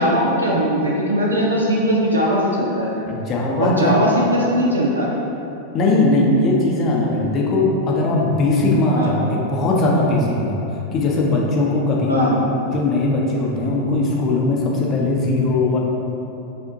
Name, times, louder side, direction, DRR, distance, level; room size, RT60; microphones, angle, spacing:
voice 1, 0.0-2.9 3.6-5.1 9.0-9.1 12.1-12.3, equal, 80° right, -3 dB, 0.5 m, -19 dB
voice 2, 3.1-3.9 5.7-10.6 10.9-12.3 12.7-15.8, left 2 dB, 30° left, -2 dB, 0.7 m, -19 dB
6.0 x 2.6 x 2.8 m, 2.9 s
figure-of-eight pair, 90°, 0 cm